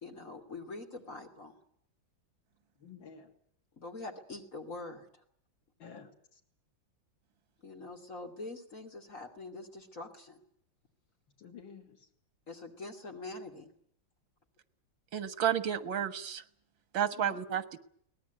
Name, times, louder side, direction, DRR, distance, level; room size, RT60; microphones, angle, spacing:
voice 1, 0.0-1.5 3.8-5.2 7.6-10.4 12.5-13.7, left 2 dB, 40° left, 3 dB, 3.0 m, -44 dB
voice 2, 2.8-3.3 5.8-6.4 11.4-12.1 17.1-17.4, left 6 dB, 80° left, 2 dB, 3.6 m, -51 dB
voice 3, 15.1-16.4 16.9-17.8, right 9 dB, 80° right, 12 dB, 2.2 m, -31 dB
23.5 x 19.0 x 9.3 m, 0.67 s
omnidirectional pair, 2.1 m